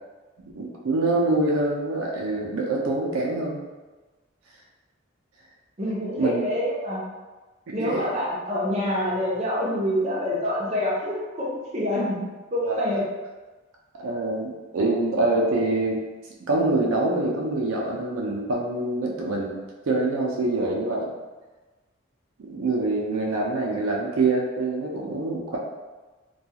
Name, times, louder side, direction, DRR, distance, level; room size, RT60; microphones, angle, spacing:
voice 1, 0.5-3.6 6.2-6.4 7.7-8.0 12.6-12.8 14.0-16.0 16.5-19.6 19.9-21.1 22.4-25.6, right 2 dB, 85° right, -2 dB, 0.4 m, -25 dB
voice 2, 5.8-7.0 7.7-12.2 12.5-13.0, left 1 dB, 30° right, -6 dB, 0.6 m, -26 dB
2.3 x 2.3 x 2.7 m, 1.2 s
head